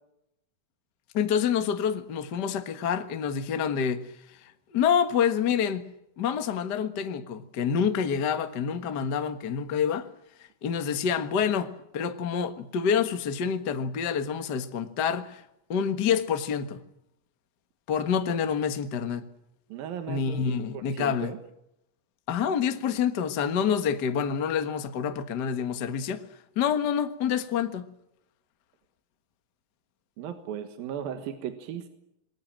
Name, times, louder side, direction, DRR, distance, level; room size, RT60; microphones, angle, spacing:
voice 1, 1.1-4.1 4.4-5.8 6.2-10.1 10.6-15.4 15.7-16.8 17.9-19.2 20.1-21.3 22.3-26.2 26.5-27.8, left 7 dB, 45° left, 1.3 m, -27 dB
voice 2, 19.7-21.4 30.2-31.9, right 8 dB, 80° right, 3.3 m, -36 dB
27.0 x 22.0 x 7.5 m
omnidirectional pair, 4.1 m